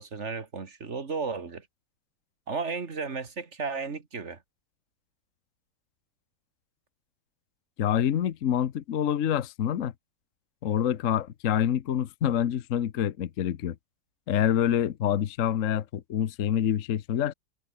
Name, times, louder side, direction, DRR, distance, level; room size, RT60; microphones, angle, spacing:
voice 1, 0.0-1.7 2.5-4.4, right 4 dB, 35° right, 2.2 m, -34 dB
voice 2, 7.8-9.9 10.6-13.8 14.3-17.3, left 10 dB, 55° left, 1.0 m, -26 dB
omnidirectional pair, 2.2 m